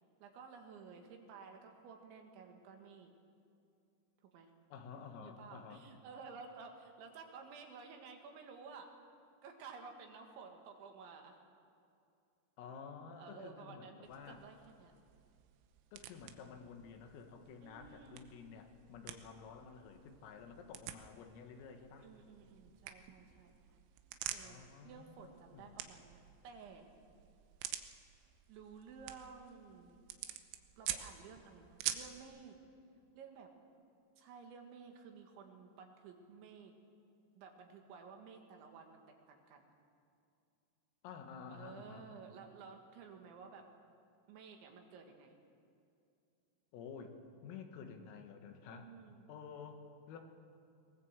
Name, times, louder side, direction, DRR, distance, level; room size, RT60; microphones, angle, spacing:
voice 1, 0.2-3.1 4.3-4.5 5.2-9.0 9.4-11.4 13.2-14.9 17.6-18.2 22.0-23.6 24.3-26.9 28.5-30.0 30.8-32.6 33.2-33.5 34.2-36.7 37.4-39.0 39.3-39.7 41.5-43.7 44.3-45.4 48.7-49.3, right 5 dB, 70° right, 3 dB, 3.8 m, -54 dB
voice 2, 4.7-5.9 12.6-14.4 15.9-22.1 24.4-25.8 41.0-42.1 46.7-47.2 47.4-48.9 49.3-50.2, left 6 dB, 85° left, 4 dB, 4.3 m, -51 dB
sound 1, 14.1-32.2, right 12 dB, 85° right, 3.6 m, -48 dB
22.5 x 19.0 x 7.4 m, 2.5 s
omnidirectional pair, 5.9 m